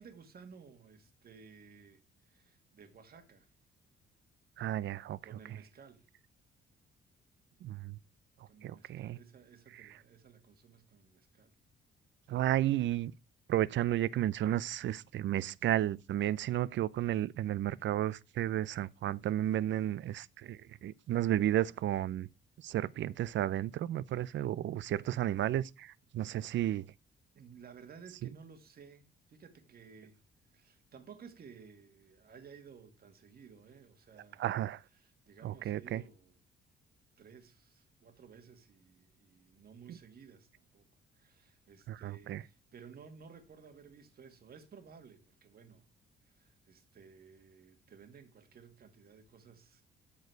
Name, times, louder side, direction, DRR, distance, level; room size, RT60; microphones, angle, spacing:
voice 1, 0.0-3.5 5.2-6.1 8.5-11.5 27.3-30.2 30.5-34.5 34.9-36.4 37.2-40.9 41.1-45.9 46.3-49.8, right 6 dB, 50° right, 2.1 m, -56 dB
voice 2, 4.6-5.2 7.6-8.0 8.6-9.2 12.3-13.1 13.5-22.3 22.6-26.8 34.4-34.8 35.4-36.0 41.9-42.4, right 13 dB, 65° right, 0.6 m, -32 dB
13.0 x 4.7 x 4.6 m
cardioid pair, 110°, 20 cm